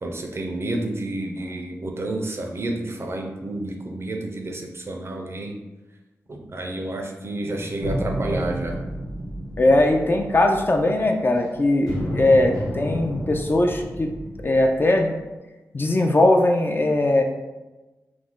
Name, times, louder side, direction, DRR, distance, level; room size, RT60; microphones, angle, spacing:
voice 1, 0.0-5.6 6.3-8.8, right 2 dB, 45° right, 2 dB, 0.5 m, -30 dB
sound 1, 7.8-11.4 11.9-15.2, equal, 85° left, 1.3 m, -31 dB
voice 2, 9.6-14.1 14.4-15.2 15.7-17.2, left 1 dB, 35° left, 3 dB, 0.4 m, -19 dB
2.5 x 2.1 x 3.6 m, 1.1 s
cardioid pair, 50°, 6 cm